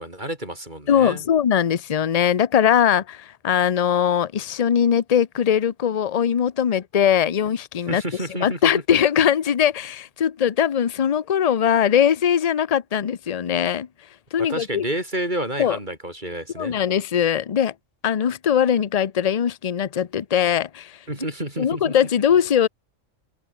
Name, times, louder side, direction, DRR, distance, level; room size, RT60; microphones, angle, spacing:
voice 1, 0.0-1.2 7.9-8.7 14.4-16.8 21.1-22.0, right 1 dB, 35° right, 6.8 m, -30 dB
voice 2, 0.9-8.0 8.4-13.9 14.3-14.8 15.6-15.8 16.6-17.7 18.0-21.0 21.6-22.7, left 9 dB, 40° left, 0.7 m, -21 dB
omnidirectional pair, 1.3 m